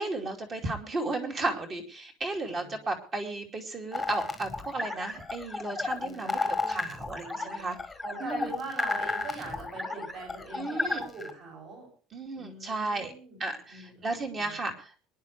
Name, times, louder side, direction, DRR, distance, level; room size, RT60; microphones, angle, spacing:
voice 1, 0.0-7.8 8.2-8.5 10.5-11.0 12.1-13.1 13.4-14.9, right 2 dB, 25° right, 4 dB, 2.6 m, -34 dB
voice 2, 2.4-2.8 6.0-6.9 7.1-11.9 12.3-14.6, right 3 dB, 40° right, 0 dB, 7.4 m, -43 dB
sound 1, 3.9-11.3, left 3 dB, 10° left, 1.5 m, -33 dB
23.5 x 10.5 x 3.3 m, 0.39 s
cardioid pair, 175°, 0 cm